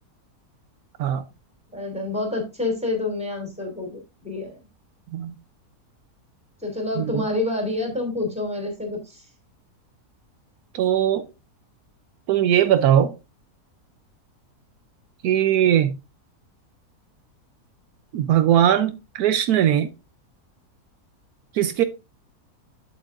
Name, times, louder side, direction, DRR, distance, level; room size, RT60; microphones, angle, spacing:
voice 1, 1.7-4.6 6.6-9.3, left 2 dB, 5° right, 2.8 m, -28 dB
voice 2, 10.7-11.2 12.3-13.2 15.2-15.9 18.1-19.9 21.5-21.8, right 10 dB, 75° right, 1.1 m, -20 dB
8.8 x 7.7 x 2.5 m
omnidirectional pair, 1.6 m